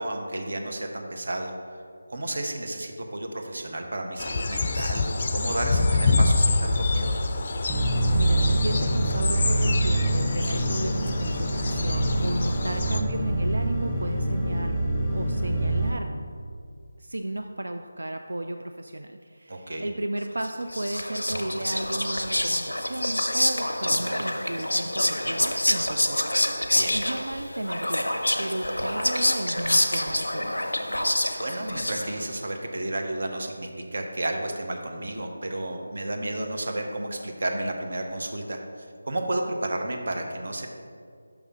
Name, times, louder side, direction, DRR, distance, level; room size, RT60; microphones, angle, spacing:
voice 1, 0.0-1.8 2.1-7.2 19.5-19.9 26.7-27.0 31.4-40.7, right 1 dB, 60° right, 3 dB, 0.8 m, -32 dB
sound 1, 4.2-13.0, left 3 dB, 40° left, 0.4 m, -26 dB
sound 2, 7.7-15.9, right 1 dB, 5° left, 0.7 m, -25 dB
voice 2, 8.1-14.8 15.1-16.1 17.0-30.5, right 1 dB, 75° right, 5 dB, 0.3 m, -34 dB
Whispering, 20.4-32.4, left 1 dB, 90° left, 0.5 m, -27 dB
5.9 x 3.6 x 5.4 m, 2.2 s
figure-of-eight pair, 160°, 0 cm